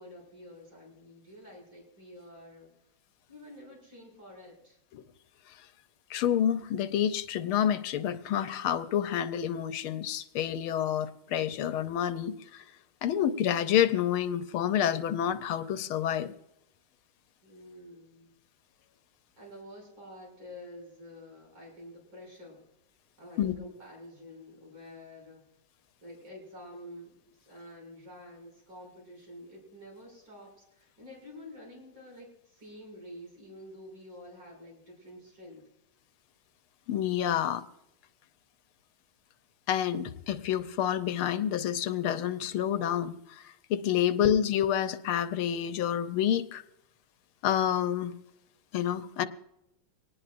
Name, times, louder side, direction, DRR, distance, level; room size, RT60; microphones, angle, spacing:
voice 1, 0.0-2.7 3.3-4.8 17.4-18.3 19.4-22.6 23.2-25.5 26.0-35.7 44.0-44.4, left 1 dB, 60° right, -1 dB, 7.6 m, -49 dB
voice 2, 6.1-12.6 13.0-16.3 23.4-23.5 36.9-37.6 39.7-43.2 43.7-46.6 47.4-48.1 48.7-49.3, left 10 dB, 80° left, 12 dB, 1.6 m, -28 dB
24.5 x 19.0 x 2.6 m, 0.84 s
omnidirectional pair, 2.3 m